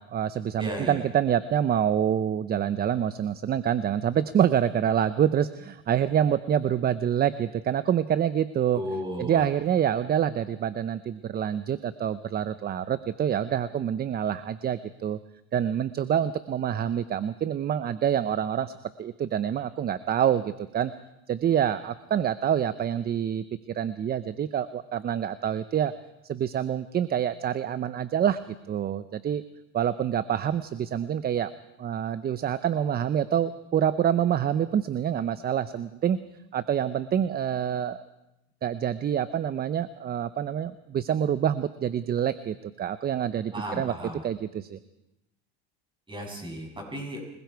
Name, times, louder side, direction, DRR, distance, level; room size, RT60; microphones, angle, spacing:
voice 1, 0.0-8.8 9.2-15.2 15.5-18.7 19.0-20.9 21.3-23.4 23.7-25.9 26.3-28.4 28.7-29.4 29.7-31.5 31.8-36.2 36.5-38.0 38.6-43.9 44.2-44.8, right 9 dB, 30° right, 13 dB, 0.7 m, -26 dB
voice 2, 0.6-1.0 8.7-9.5 43.5-44.2 46.1-47.2, equal, 15° right, 1 dB, 7.6 m, -34 dB
29.5 x 21.5 x 4.7 m, 0.89 s
supercardioid pair, 120°, 31 cm